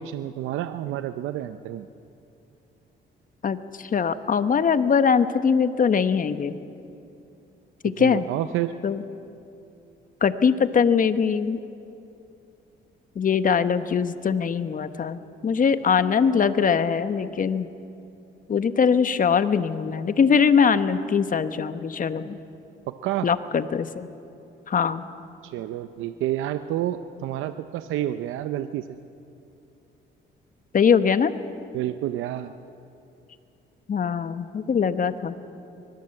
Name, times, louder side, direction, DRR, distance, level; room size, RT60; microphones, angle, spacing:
voice 1, 0.0-1.9 7.8-8.7 22.9-23.3 25.4-29.0 31.7-32.5, right 12 dB, 90° right, 10 dB, 0.7 m, -29 dB
voice 2, 3.4-6.6 7.8-8.2 8.8-9.0 10.2-11.6 13.2-17.7 18.5-22.4 23.2-24.1 24.7-25.0 30.7-31.3 33.9-35.4, left 6 dB, 45° left, 11 dB, 1.1 m, -22 dB
24.5 x 21.0 x 7.8 m, 2.7 s
cardioid pair, 90°, 20 cm